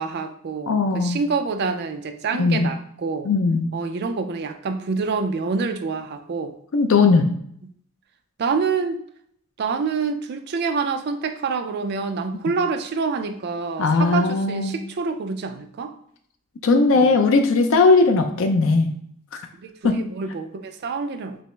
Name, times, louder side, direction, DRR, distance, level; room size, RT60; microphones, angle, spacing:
voice 1, 0.0-3.3 3.7-6.5 8.4-9.0 9.6-15.9 19.6-21.4, right 4 dB, 45° right, 7 dB, 0.3 m, -27 dB
voice 2, 0.7-1.2 2.4-2.7 3.2-3.7 6.7-7.3 13.8-14.8 16.6-18.9 19.8-20.0, left 3 dB, 60° left, 5 dB, 0.4 m, -18 dB
5.2 x 2.0 x 3.1 m, 0.66 s
head